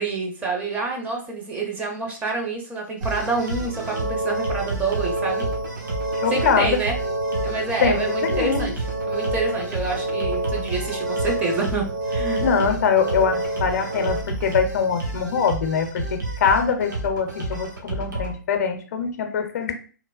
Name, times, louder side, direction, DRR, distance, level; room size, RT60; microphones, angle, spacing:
voice 1, 0.0-5.4 6.3-6.9 7.4-8.7 9.1-12.5, right 3 dB, 15° right, 1 dB, 0.5 m, -27 dB
sound 1, 3.0-18.3, right 2 dB, 75° right, 0.9 m, -31 dB
sound 2, 3.7-14.2, right 1 dB, 45° right, 1.0 m, -28 dB
voice 2, 6.2-6.8 7.8-8.7 12.4-19.7, left 6 dB, 55° left, 6 dB, 0.5 m, -23 dB
3.0 x 2.0 x 2.3 m, 0.39 s
hypercardioid pair, 130°, 10 cm